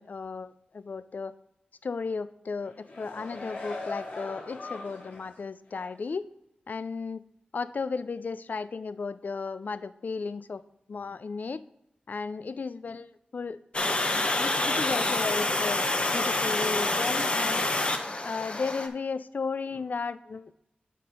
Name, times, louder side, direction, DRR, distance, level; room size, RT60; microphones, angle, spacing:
voice 1, 0.0-1.3 1.8-6.3 6.7-7.2 7.5-10.6 10.9-11.6 12.1-13.6 14.1-15.8 16.1-17.7 18.2-20.5, left 4 dB, 60° left, 15 dB, 0.3 m, -34 dB
sound 1, 2.6-5.4 5.8-5.9, left 2 dB, 85° left, 1.6 m, -40 dB
Water, 13.7-18.9, left 2 dB, 35° left, 0.7 m, -27 dB
7.3 x 4.3 x 5.2 m, 0.87 s
wide cardioid pair, 75°, 3 cm